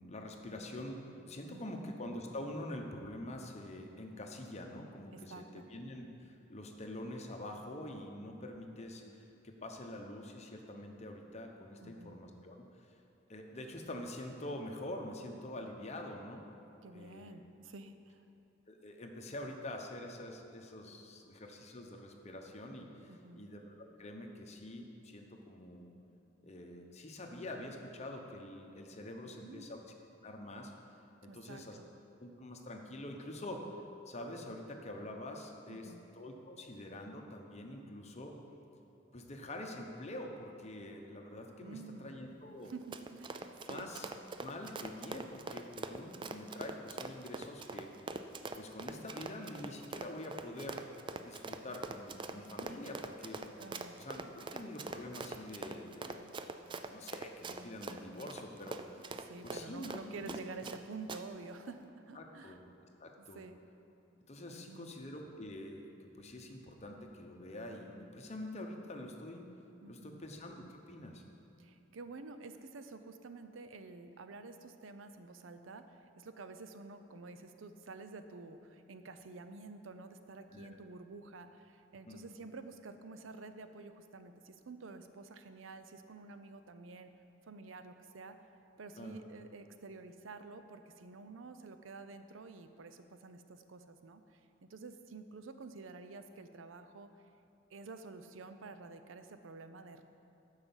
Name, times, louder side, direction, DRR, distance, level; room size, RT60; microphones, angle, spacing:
voice 1, 0.0-12.9 13.3-16.4 16.9-17.4 18.7-25.9 26.4-29.8 30.2-30.7 31.2-31.8 32.2-33.6 34.1-38.4 39.1-42.7 43.6-44.1 44.4-47.9 48.5-50.9 51.2-53.4 53.9-56.2 56.9-59.1 59.4-60.4 62.1-62.6 63.0-63.5 64.3-69.5 69.9-71.2 80.5-80.8 82.1-82.3 89.0-89.2, left 1 dB, 35° left, 2 dB, 0.9 m, -46 dB
voice 2, 1.5-1.8 5.1-5.7 11.8-12.2 16.8-18.2 23.1-23.4 29.2-29.7 31.3-31.9 35.7-36.0 41.6-42.2 42.7-43.9 53.6-54.0 59.0-62.6 63.2-63.6 64.5-65.0 69.8-70.2 71.6-87.1 87.4-88.4 88.8-97.1 97.7-100.0, right 3 dB, 85° right, 9 dB, 0.6 m, -50 dB
Run, 42.6-60.8 61.1-61.2, right 3 dB, 25° right, 0.4 m, -43 dB
9.7 x 5.7 x 7.1 m, 2.7 s
head